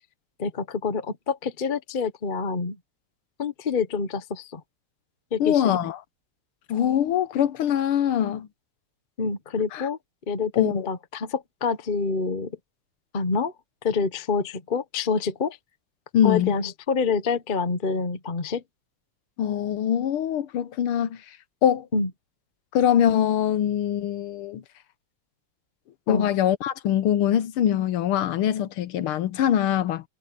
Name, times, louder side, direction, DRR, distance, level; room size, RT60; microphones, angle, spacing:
voice 1, 0.4-2.8 3.4-4.6 5.3-5.9 9.2-10.0 10.3-12.5 13.1-13.5 13.8-15.6 16.2-18.6 21.9-22.1 26.1-26.3, left 5 dB, 40° left, 0.7 m, -27 dB
voice 2, 5.4-6.0 6.7-8.5 9.7-9.9 10.6-10.9 16.1-16.5 19.4-21.2 21.6-21.9 22.7-24.6 26.1-30.0, left 10 dB, 80° left, 1.8 m, -23 dB
omnidirectional pair, 2.3 m